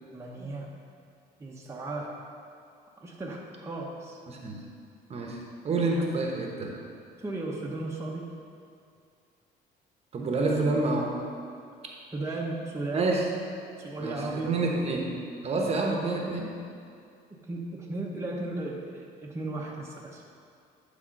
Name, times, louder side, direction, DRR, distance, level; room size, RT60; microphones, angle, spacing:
voice 1, 0.1-0.7 1.4-2.2 3.0-4.2 7.2-8.3 12.1-13.2 13.8-14.6 17.5-20.2, right 2 dB, 15° right, -3 dB, 0.9 m, -35 dB
voice 2, 4.3-4.6 5.1-5.4 5.6-6.7 10.1-11.1 12.9-13.3 14.0-15.1 15.4-16.5, right 3 dB, 40° right, 0 dB, 1.1 m, -28 dB
11.0 x 3.7 x 5.3 m, 2.4 s
cardioid pair, 110°, 17 cm